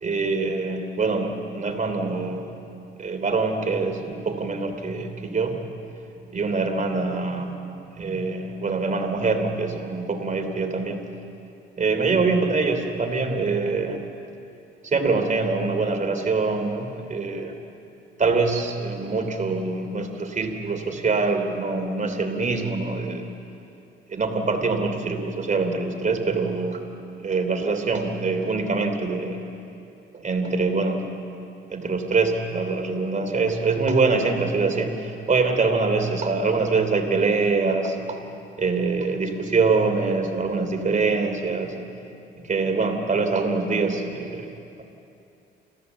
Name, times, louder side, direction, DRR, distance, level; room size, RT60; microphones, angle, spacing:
voice 1, 0.0-2.5 3.0-5.6 6.3-7.5 8.0-11.0 11.8-14.0 14.8-17.6 18.2-23.3 24.1-26.8 27.2-29.4 30.1-31.1 31.7-38.2 38.6-41.7 42.4-44.5, right 4 dB, 40° right, 4 dB, 3.2 m, -24 dB
28.0 x 15.0 x 8.2 m, 2.7 s
cardioid pair, 90°, 20 cm